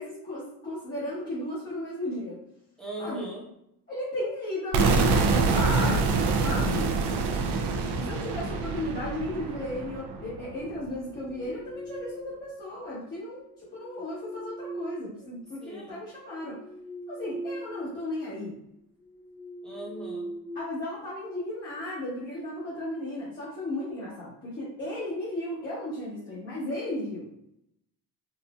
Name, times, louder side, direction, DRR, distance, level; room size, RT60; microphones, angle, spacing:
voice 1, 0.0-2.4 3.0-3.3 3.9-6.9 8.0-16.6 17.1-18.6 20.5-27.3, left 1 dB, 25° left, -10 dB, 1.1 m, -35 dB
voice 2, 2.8-3.5 15.6-16.0 19.6-20.3, right 1 dB, ahead, -5 dB, 0.9 m, -39 dB
sound 1, 4.7-10.6, right 4 dB, 70° right, 0.6 m, -26 dB
sound 2, 11.0-12.5 13.5-15.6 16.1-18.0 18.3-18.5 19.0-21.4, right 1 dB, 15° right, 0.3 m, -41 dB
4.0 x 2.6 x 2.3 m, 0.77 s
cardioid pair, 175°, 42 cm